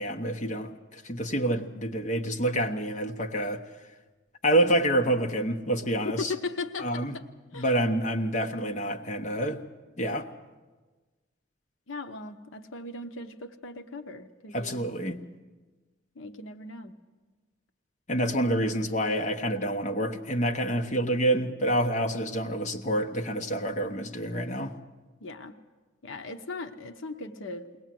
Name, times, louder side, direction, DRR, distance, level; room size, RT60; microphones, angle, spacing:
voice 1, 0.0-3.6 4.4-6.3 6.8-7.1 7.5-9.6 10.0-10.3 14.5-15.2 18.1-24.7, right 1 dB, 35° left, 1.1 m, -27 dB
voice 2, 6.0-7.2 7.5-7.7 11.9-14.8 16.2-16.9 25.2-25.5 26.0-27.6, left 3 dB, 75° left, 0.9 m, -38 dB
22.0 x 18.5 x 7.6 m
head